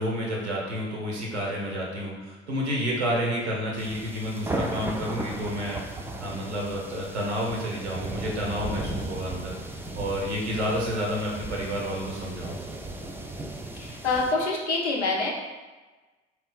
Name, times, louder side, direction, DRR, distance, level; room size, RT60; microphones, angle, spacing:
voice 1, 0.0-9.5 10.0-12.5, equal, 85° right, -2 dB, 1.0 m, -30 dB
sound 1, 3.8-14.3, right 2 dB, 5° right, 0.4 m, -36 dB
voice 2, 13.7-15.3, left 3 dB, 90° left, -2 dB, 0.7 m, -26 dB
3.9 x 3.1 x 3.8 m, 1.2 s
figure-of-eight pair, 55°, 33 cm